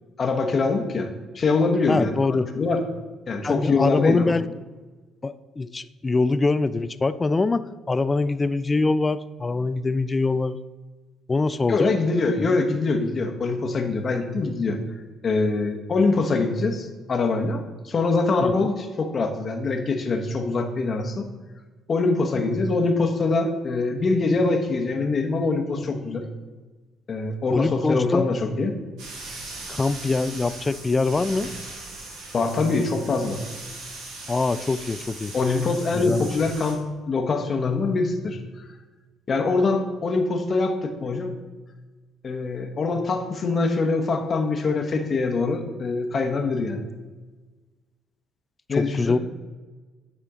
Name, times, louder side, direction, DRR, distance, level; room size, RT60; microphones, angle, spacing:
voice 1, 0.2-1.1 1.3-2.8 3.3-4.3 11.7-14.8 15.2-21.3 21.9-26.2 27.1-28.7 32.3-33.4 35.3-36.8 37.1-38.4 39.3-41.3 42.2-46.8 48.7-49.2, left 3 dB, 45° left, 5 dB, 1.0 m, -24 dB
voice 2, 1.9-2.5 3.4-4.5 5.2-7.6 7.9-10.6 11.3-11.9 12.4-12.6 18.4-18.7 27.5-28.3 29.7-31.5 34.3-35.3 35.9-36.3 48.7-49.2, left 3 dB, 25° left, 15 dB, 0.3 m, -24 dB
sound 1, 29.0-36.7, right 2 dB, 80° right, 1.8 m, -39 dB
9.6 x 4.3 x 3.8 m, 1.3 s
supercardioid pair, 75°, 0 cm